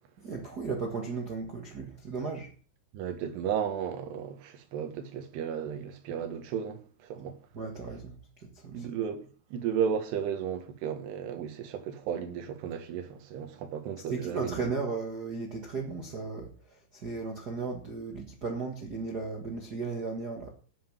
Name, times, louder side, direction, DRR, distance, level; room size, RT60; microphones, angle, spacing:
voice 1, 0.2-2.5 7.5-8.2 8.5-8.9 14.1-20.5, right 4 dB, 90° right, 0.8 m, -35 dB
voice 2, 2.9-7.4 8.7-9.2 9.5-14.6, right 8 dB, 75° right, 3.6 m, -34 dB
10.0 x 8.0 x 7.3 m
omnidirectional pair, 4.9 m